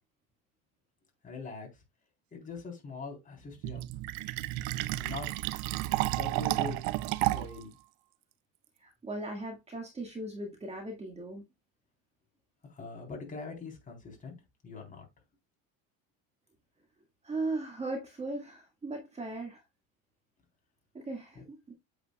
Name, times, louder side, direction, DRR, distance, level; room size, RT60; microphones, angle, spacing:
voice 1, 1.2-1.7 2.3-3.9 5.0-5.6 6.1-6.8 7.2-7.7 12.6-14.4 14.6-15.1, left 4 dB, 20° left, 3.7 m, -42 dB
Fill (with liquid), 3.6-7.6, right 18 dB, 75° right, 0.6 m, -31 dB
voice 2, 8.8-11.4 17.2-19.6 20.9-21.7, right 2 dB, 15° right, 1.9 m, -38 dB
8.3 x 8.1 x 2.3 m
cardioid pair, 155°, 37 cm